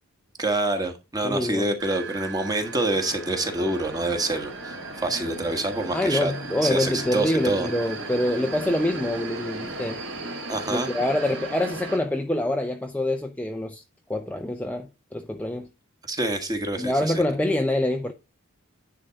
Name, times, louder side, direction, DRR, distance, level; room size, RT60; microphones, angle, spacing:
voice 1, 0.4-6.3 6.6-7.7 10.5-10.9 16.1-17.2, right 2 dB, 15° right, 1.4 m, -27 dB
voice 2, 1.2-1.6 5.9-10.0 10.7-13.8 14.1-15.7 16.8-18.1, left 1 dB, 5° left, 0.5 m, -25 dB
sound 1, 1.8-12.0, right 2 dB, 65° right, 3.0 m, -36 dB
10.0 x 3.8 x 5.7 m
head